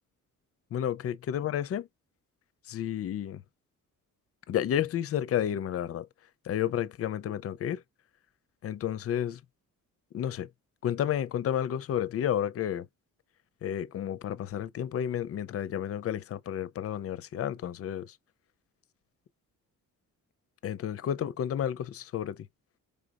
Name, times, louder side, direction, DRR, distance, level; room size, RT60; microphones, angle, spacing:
voice 1, 0.7-1.9 2.7-3.4 4.5-6.1 6.5-7.8 8.6-9.4 10.1-10.5 10.8-12.8 13.6-18.1 20.6-22.4, left 10 dB, 45° left, 0.5 m, -31 dB
5.1 x 3.4 x 2.4 m
cardioid pair, 150°, 32 cm